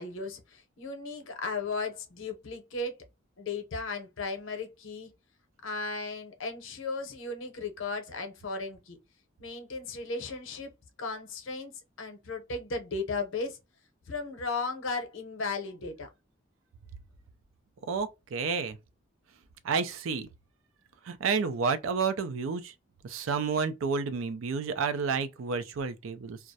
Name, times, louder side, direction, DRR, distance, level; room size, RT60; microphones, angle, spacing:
voice 1, 0.0-3.0 3.4-5.1 5.6-9.0 9.4-10.7 11.0-13.6 14.1-16.1, left 3 dB, 85° left, 0.7 m, -36 dB
voice 2, 17.9-18.8 19.6-20.3 21.0-22.7 23.0-26.4, right 5 dB, 90° right, 0.4 m, -30 dB
2.3 x 2.0 x 2.6 m
head